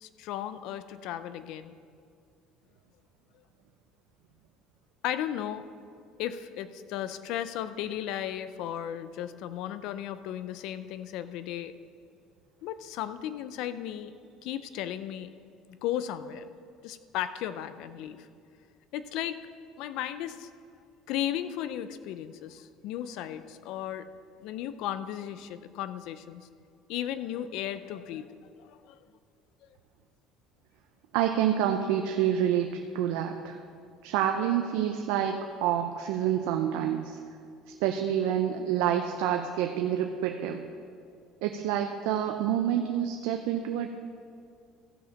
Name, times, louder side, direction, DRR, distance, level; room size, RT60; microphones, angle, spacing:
voice 1, 0.0-1.7 5.0-5.7 6.2-11.7 12.6-14.1 14.4-15.3 15.7-16.5 16.8-18.3 18.9-19.4 19.8-20.5 21.1-24.1 24.4-26.5 26.9-29.0, left 11 dB, 70° left, 13 dB, 0.5 m, -35 dB
voice 2, 31.1-33.6 34.0-37.2 37.8-40.6 41.4-43.9, right 10 dB, 85° right, 4 dB, 0.5 m, -28 dB
15.0 x 5.1 x 5.9 m, 2.3 s
cardioid pair, 130°, 0 cm